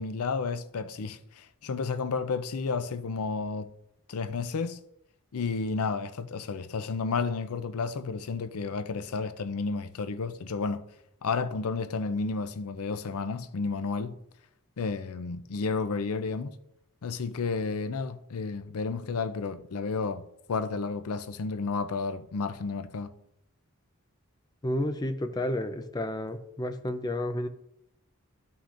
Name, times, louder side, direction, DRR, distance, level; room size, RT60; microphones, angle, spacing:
voice 1, 0.0-3.7 4.1-4.8 5.3-10.8 11.2-14.2 14.8-16.5 17.0-20.2 20.5-23.1, left 4 dB, 85° left, 0.5 m, -31 dB
voice 2, 24.6-27.5, left 1 dB, 20° left, 0.5 m, -31 dB
13.0 x 5.6 x 2.5 m
head